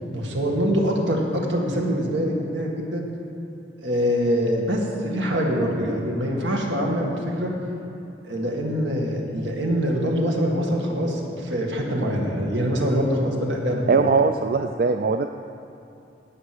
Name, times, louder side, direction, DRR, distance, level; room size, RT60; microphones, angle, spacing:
voice 1, 0.1-3.1 3.8-7.5 8.3-14.0, equal, 80° right, -1 dB, 2.1 m, -24 dB
voice 2, 13.9-15.3, right 4 dB, 50° right, 7 dB, 0.4 m, -20 dB
17.5 x 6.4 x 6.1 m, 2.8 s
head